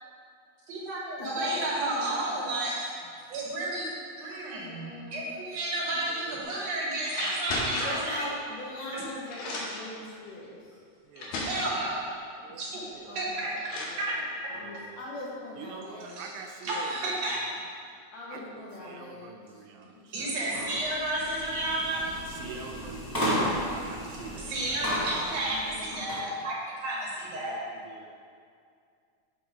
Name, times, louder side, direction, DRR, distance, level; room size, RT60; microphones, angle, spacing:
voice 1, 0.7-2.9 3.3-3.9 4.2-8.2 8.9-9.0 11.3-12.1 12.6-12.8 13.2-13.5 13.9-14.2 16.2-16.3 16.6-17.4 20.1-22.2 24.5-27.6, right 2 dB, 65° right, -4 dB, 2.2 m, -31 dB
voice 2, 1.2-2.1 4.5-5.3 7.7-10.8 12.5-12.6 13.0-16.3 18.1-19.6 25.4-26.1, left 1 dB, 65° left, -5 dB, 2.3 m, -41 dB
voice 3, 6.0-6.6 11.1-11.5 12.4-12.6 12.9-13.2 14.5-15.0 15.6-17.4 18.3-18.4 18.8-20.4 21.9-25.5 27.2-28.1, right 5 dB, 80° right, 3 dB, 1.8 m, -46 dB
sound 1, 6.4-6.7 7.1-8.1 8.9-9.0 9.3-9.9 10.7-10.8 11.2-11.8 13.1-13.2 13.6-14.0, left 2 dB, 90° left, 2.6 m, -35 dB
sound 2, 20.4-26.3, equal, 15° left, 0.6 m, -34 dB
8.4 x 3.8 x 4.8 m, 2.3 s
omnidirectional pair, 3.5 m